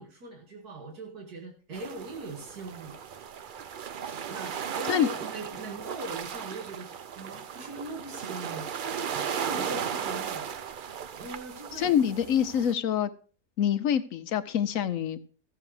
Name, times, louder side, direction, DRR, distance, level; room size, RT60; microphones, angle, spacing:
voice 1, 0.0-3.0 4.3-10.5 11.2-12.0, right 2 dB, 90° right, 1 dB, 2.4 m, -41 dB
sound 1, 1.7-12.7, right 7 dB, 60° right, 0.5 m, -36 dB
voice 2, 11.7-13.1 13.6-15.3, left 9 dB, 65° left, 12 dB, 1.1 m, -26 dB
14.5 x 6.9 x 4.8 m, 0.39 s
omnidirectional pair, 1.6 m